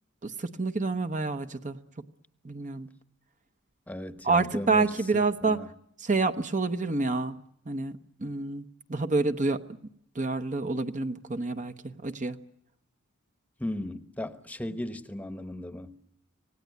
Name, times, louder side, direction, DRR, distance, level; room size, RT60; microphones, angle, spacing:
voice 1, 0.2-1.8 2.4-2.9 4.2-5.6 6.0-7.4 7.7-9.6 10.2-12.4, right 3 dB, 35° right, 0.9 m, -28 dB
voice 2, 3.9-5.7 13.6-16.0, left 1 dB, 5° left, 1.0 m, -37 dB
26.0 x 18.0 x 9.5 m
head